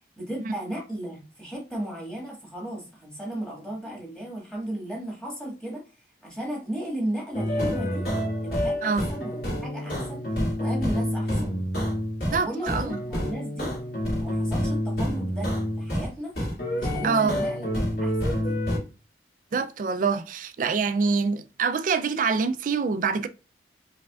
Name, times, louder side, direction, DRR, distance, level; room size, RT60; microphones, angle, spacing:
voice 1, 0.0-5.8 6.2-8.0 8.4-10.2 10.6-11.6 12.3-13.7 14.2-16.3 16.7-18.6, right 1 dB, 5° left, 1.6 m, -35 dB
sound 1, 7.3-12.4 12.7-16.1 16.4-18.8, equal, 60° left, 2.3 m, -28 dB
voice 2, 12.3-13.0 17.0-17.4 19.5-23.3, right 5 dB, 45° right, 0.4 m, -25 dB
4.9 x 3.3 x 2.3 m
head